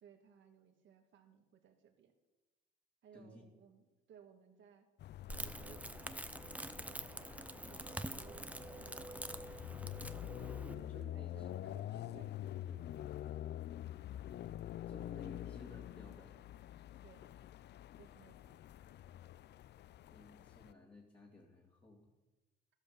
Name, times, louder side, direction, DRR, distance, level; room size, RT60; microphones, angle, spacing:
voice 1, 0.0-2.1 3.0-4.9 5.3-6.3 6.8-9.2 11.1-13.5 17.0-17.3 18.0-18.6, right 8 dB, 70° right, 4 dB, 1.7 m, -62 dB
voice 2, 3.1-3.4 10.5-11.5 12.6-12.8 14.9-16.4 20.1-22.1, left 1 dB, 25° left, -3 dB, 2.4 m, -56 dB
sound 1, 5.0-20.7, left 12 dB, 60° left, 0.4 m, -47 dB
Crackle, 5.3-10.7, right 1 dB, 5° right, 0.7 m, -46 dB
13.0 x 8.2 x 6.8 m, 1.1 s
cardioid pair, 90°, 20 cm